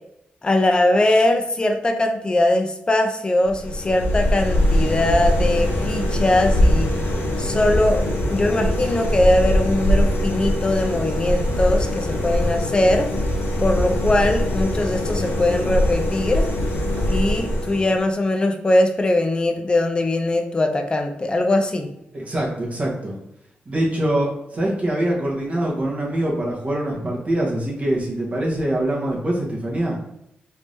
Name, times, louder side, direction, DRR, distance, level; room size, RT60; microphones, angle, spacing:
voice 1, 0.4-6.9 7.4-13.1 13.6-16.5 17.1-21.9, left 1 dB, 25° left, 5 dB, 0.5 m, -21 dB
sound 1, 3.4-18.1, equal, 90° left, 0.9 m, -22 dB
voice 2, 22.1-23.2 23.7-30.0, right 1 dB, 35° right, -3 dB, 1.1 m, -24 dB
3.4 x 2.6 x 3.2 m, 0.82 s
wide cardioid pair, 115°, 4 cm